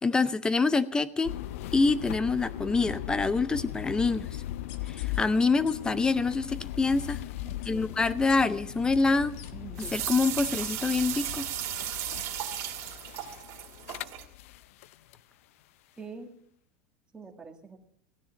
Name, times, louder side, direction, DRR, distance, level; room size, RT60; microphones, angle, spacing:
voice 1, 0.0-1.3 1.7-4.3 4.9-7.2 7.7-9.3 9.8-11.5, left 3 dB, 10° left, 16 dB, 0.6 m, -26 dB
sound 1, 1.2-15.2, left 14 dB, 85° left, 0.5 m, -39 dB
sound 2, 4.7-5.2 5.7-5.8 6.1-6.4 7.1-7.2 7.6-7.7 8.3-8.4 8.9-9.0 9.4-9.5 9.8-9.9 10.2-10.3 10.7-10.8 11.3-11.4, left 9 dB, 50° left, 1.3 m, -47 dB
voice 2, 7.4-7.9 9.5-9.8 16.0-16.4 17.1-17.8, right 4 dB, 10° right, 3 dB, 1.8 m, -45 dB
sound 3, 9.8-14.2, right 12 dB, 40° right, 2.3 m, -35 dB
16.0 x 10.0 x 7.1 m, 0.65 s
supercardioid pair, 155°, 7 cm